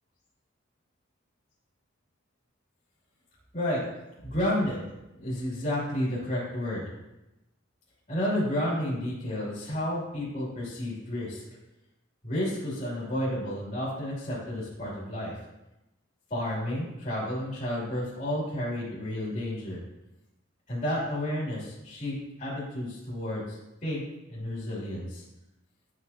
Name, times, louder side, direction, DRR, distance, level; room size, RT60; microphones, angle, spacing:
voice 1, 4.2-4.8 5.2-6.8 8.1-11.4 12.2-15.3 16.3-19.8 20.7-24.0 24.3-25.2, left 1 dB, 35° left, -8 dB, 2.8 m, -31 dB
9.7 x 6.1 x 2.8 m, 0.95 s
head